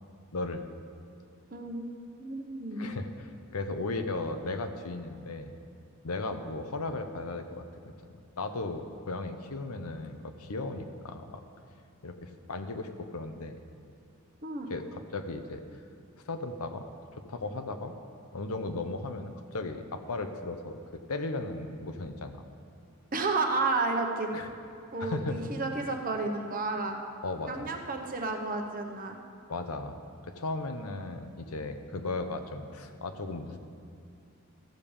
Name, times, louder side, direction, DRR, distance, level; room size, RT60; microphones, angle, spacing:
voice 1, 0.3-0.6 2.7-5.5 6.0-7.7 8.4-11.4 12.0-13.6 14.7-15.6 16.2-16.9 17.1-17.9 18.3-22.4 24.3-24.5 25.0-25.5 27.2-27.7 29.5-30.0 30.3-33.6, left 2 dB, 80° left, 7 dB, 0.8 m, -36 dB
voice 2, 1.5-1.9 2.2-2.9 14.4-14.7 23.1-24.3 24.9-27.0 27.5-29.2, right 3 dB, 40° right, 3 dB, 0.9 m, -31 dB
14.0 x 5.2 x 7.2 m, 2.5 s
head